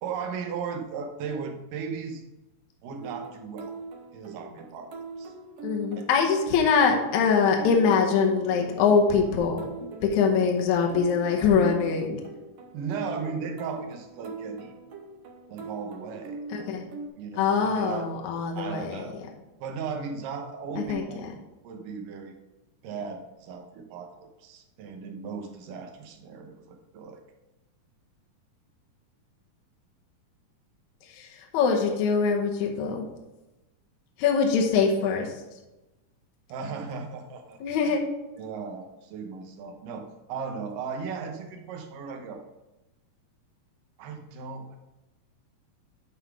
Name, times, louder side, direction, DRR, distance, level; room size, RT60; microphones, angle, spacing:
voice 1, 0.0-2.2 2.8-3.7 4.1-4.9 5.2-5.3 6.0-6.1 12.7-14.7 15.5-16.4 17.2-18.1 18.6-19.2 19.6-21.3 21.6-22.4 22.8-27.2 36.5-38.0 38.4-42.4 44.0-44.8, right 5 dB, 85° right, 3 dB, 2.6 m, -36 dB
sound 1, 3.0-17.1, right 3 dB, 65° right, 1.6 m, -41 dB
voice 2, 5.6-9.6 10.1-12.2 16.5-16.8 17.4-19.0 20.8-21.0 31.1-33.1 34.2-35.3 37.6-38.0, left 5 dB, 70° left, 1 dB, 2.2 m, -23 dB
11.5 x 4.0 x 4.6 m, 1.0 s
omnidirectional pair, 3.8 m